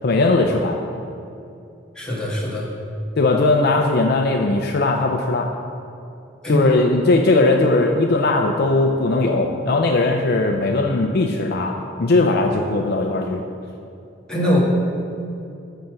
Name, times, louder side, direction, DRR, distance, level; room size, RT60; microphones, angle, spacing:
voice 1, 0.0-0.8 3.2-5.5 6.5-13.4, left 2 dB, 55° left, 3 dB, 0.5 m, -19 dB
voice 2, 1.9-2.7 6.4-6.6 14.3-14.6, left 1 dB, 5° left, -7 dB, 1.8 m, -21 dB
6.9 x 5.7 x 6.3 m, 2.6 s
head